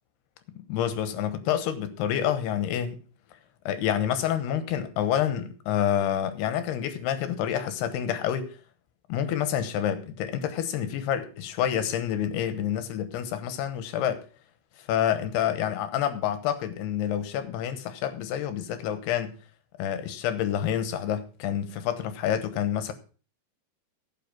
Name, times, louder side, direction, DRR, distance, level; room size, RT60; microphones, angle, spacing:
voice 1, 0.5-3.0 3.7-8.6 9.1-14.2 14.8-19.4 19.8-22.9, left 10 dB, 90° left, 3.2 m, -28 dB
16.0 x 5.8 x 5.9 m
omnidirectional pair, 4.5 m